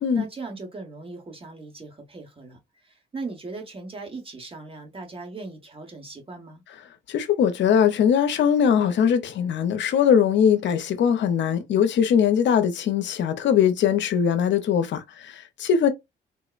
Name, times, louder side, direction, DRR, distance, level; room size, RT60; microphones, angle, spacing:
voice 1, 0.1-6.6, right 3 dB, 30° right, 1.1 m, -39 dB
voice 2, 7.1-15.9, left 8 dB, 65° left, 0.6 m, -21 dB
3.5 x 2.0 x 2.4 m
cardioid pair, 90°, 20 cm